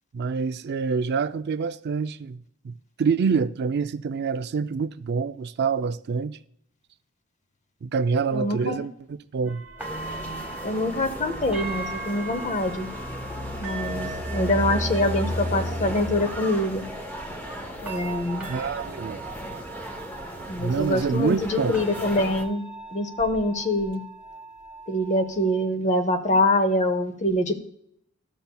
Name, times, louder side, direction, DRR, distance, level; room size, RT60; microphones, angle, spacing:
voice 1, 0.1-6.4 7.8-9.6 18.4-19.2 20.6-21.8, right 5 dB, 50° right, 0.4 m, -26 dB
voice 2, 8.3-8.8 10.6-12.9 13.6-16.8 17.8-18.5 20.5-22.7 22.9-24.0 24.9-27.6, left 1 dB, 35° left, 0.8 m, -25 dB
sound 1, 9.5-25.7, right 3 dB, 5° right, 1.2 m, -40 dB
sound 2, 9.8-22.4, equal, 10° left, 0.8 m, -34 dB
13.0 x 6.8 x 2.3 m
head